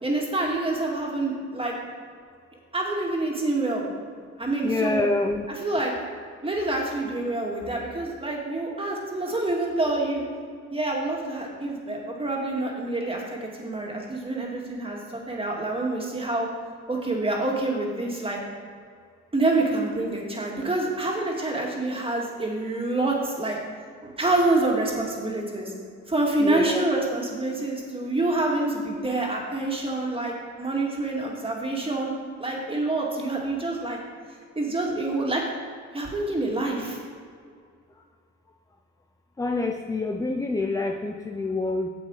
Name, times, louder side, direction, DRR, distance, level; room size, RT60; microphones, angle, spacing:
voice 1, 0.0-1.7 2.7-3.8 4.4-5.1 5.5-5.9 6.4-10.2 10.7-16.5 16.9-18.4 19.3-23.6 24.0-25.7 26.1-32.1 32.4-34.0 34.6-35.4 35.9-37.0, right 2 dB, 20° right, -2 dB, 2.2 m, -27 dB
voice 2, 4.6-5.5 26.4-26.8 39.4-41.9, left 3 dB, 10° left, 5 dB, 0.5 m, -26 dB
8.5 x 7.5 x 4.8 m, 2.1 s
cardioid pair, 90°, 30 cm